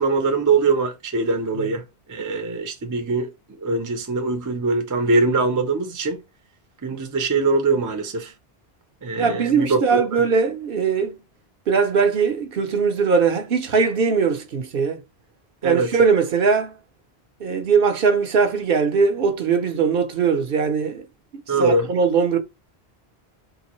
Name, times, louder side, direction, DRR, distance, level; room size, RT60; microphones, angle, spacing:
voice 1, 0.0-1.8 2.1-6.2 6.8-8.3 9.0-10.2 15.6-15.9 21.5-21.9, right 3 dB, 25° right, 0.5 m, -22 dB
voice 2, 9.2-11.2 11.7-15.0 15.6-16.7 17.4-21.0 21.6-22.4, right 5 dB, 60° right, 0.8 m, -20 dB
3.8 x 2.5 x 3.0 m
omnidirectional pair, 1.1 m